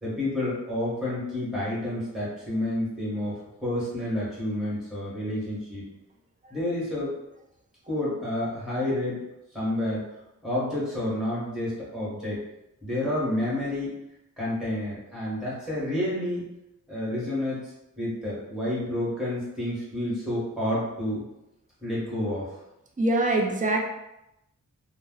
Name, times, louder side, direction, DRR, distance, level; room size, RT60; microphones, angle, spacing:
voice 1, 0.0-3.3 3.6-5.8 6.5-7.1 7.9-9.2 9.5-10.0 10.4-12.4 12.8-13.9 14.4-16.4 16.9-17.6 18.0-21.2 21.8-22.5, left 1 dB, ahead, -9 dB, 1.4 m, -29 dB
voice 2, 23.0-23.8, right 2 dB, 25° right, 0 dB, 0.4 m, -23 dB
2.6 x 2.1 x 3.8 m, 0.89 s
wide cardioid pair, 135°, 32 cm